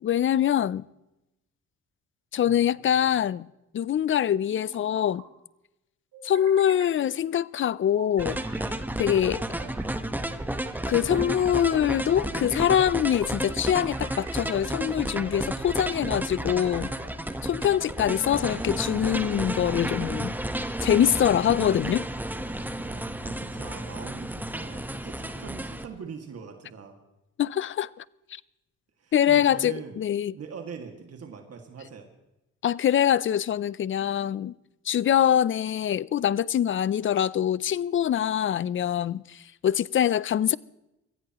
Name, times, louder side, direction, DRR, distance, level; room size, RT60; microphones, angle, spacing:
voice 1, 0.0-0.8 2.3-3.5 3.7-5.2 6.2-8.4 9.0-9.4 10.9-16.9 17.4-20.3 20.8-22.1 27.4-28.0 28.3-28.4 29.1-30.3 32.6-34.5 34.9-40.6, left 10 dB, 40° left, 0.5 m, -24 dB
sound 1, 2.4-3.1 4.5-5.3 6.1-6.9 8.0-8.7 9.3-10.0 10.6-11.5 12.1-12.8 13.5-14.4 15.0-15.5 16.3-17.1, right 5 dB, 80° right, 5.1 m, -47 dB
sound 2, 8.2-25.9, right 1 dB, 5° right, 1.1 m, -32 dB
voice 2, 22.8-27.0 29.0-30.0 30.3-32.1, right 6 dB, 55° right, 2.2 m, -42 dB
24.0 x 15.5 x 3.0 m
cardioid pair, 90°, 30 cm